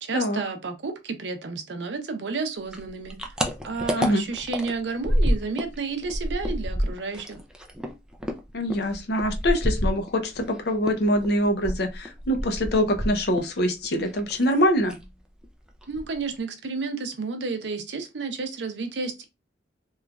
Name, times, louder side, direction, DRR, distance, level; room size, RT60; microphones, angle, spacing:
voice 1, 0.0-3.3 3.6-7.4 15.9-19.2, right 4 dB, 75° right, 0.6 m, -31 dB
sound 1, 2.7-5.8 6.0-10.5 10.8-13.6 13.8-14.5 14.8-15.1 15.4-15.5 15.8-16.4, equal, 5° right, 0.3 m, -28 dB
voice 2, 8.5-15.0, equal, 65° left, 0.6 m, -24 dB
3.0 x 2.4 x 2.3 m
head